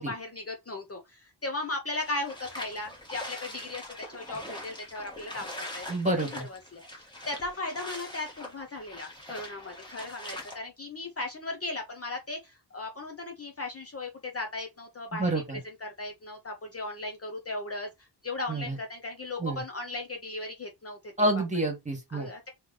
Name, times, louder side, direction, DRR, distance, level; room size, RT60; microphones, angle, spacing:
voice 1, 0.0-5.9 6.3-6.8 7.3-17.9 18.2-21.3 22.1-22.5, left 2 dB, 35° left, 0.7 m, -37 dB
sound 1, 2.0-10.6, left 1 dB, 10° left, 1.3 m, -43 dB
voice 2, 5.9-6.4 15.1-15.6 18.5-18.8 19.4-19.6 21.2-22.3, right 1 dB, 15° right, 1.5 m, -28 dB
3.2 x 3.0 x 3.8 m
wide cardioid pair, 145°, 42 cm